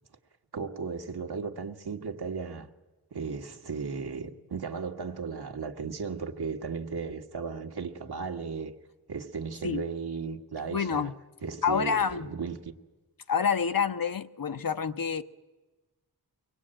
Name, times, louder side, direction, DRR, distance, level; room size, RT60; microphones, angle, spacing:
voice 1, 0.5-2.7 3.1-8.7 9.1-11.1 11.4-12.7, right 5 dB, 75° right, 1.5 m, -35 dB
voice 2, 10.7-11.1 11.6-12.3 13.3-15.2, left 6 dB, 60° left, 0.9 m, -27 dB
23.5 x 19.0 x 8.8 m
wide cardioid pair, 65°, 39 cm